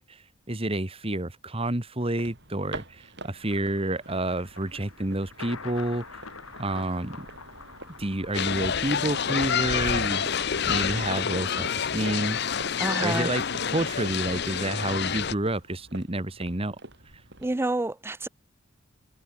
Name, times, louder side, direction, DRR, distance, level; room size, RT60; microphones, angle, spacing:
voice 1, 0.0-6.2 6.6-7.3 8.0-12.4 13.0-16.8, right 1 dB, 25° right, 1.7 m, -29 dB
sound 1, 2.0-17.5, right 2 dB, 55° right, 7.4 m, -46 dB
Thunder, 3.5-15.8, left 4 dB, 90° left, 4.0 m, -48 dB
sound 2, 8.3-15.3, left 7 dB, 55° left, 0.8 m, -28 dB
voice 2, 12.8-13.3 17.4-18.3, right 2 dB, 10° right, 0.3 m, -28 dB
head